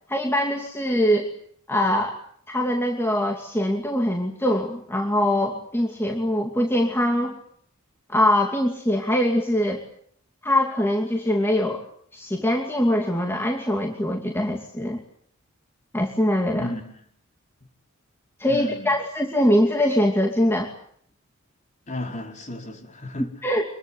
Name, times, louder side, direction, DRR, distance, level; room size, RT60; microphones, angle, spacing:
voice 1, 0.1-1.3 1.7-2.2 2.5-7.4 8.1-9.8 10.4-11.8 12.1-15.0 15.9-16.7 18.4-20.7 23.4-23.6, left 1 dB, 10° left, 2 dB, 2.6 m, -23 dB
voice 2, 16.6-17.1 18.5-18.9 21.9-23.3, left 1 dB, 35° left, 3 dB, 5.1 m, -34 dB
26.0 x 22.5 x 9.2 m, 0.63 s
head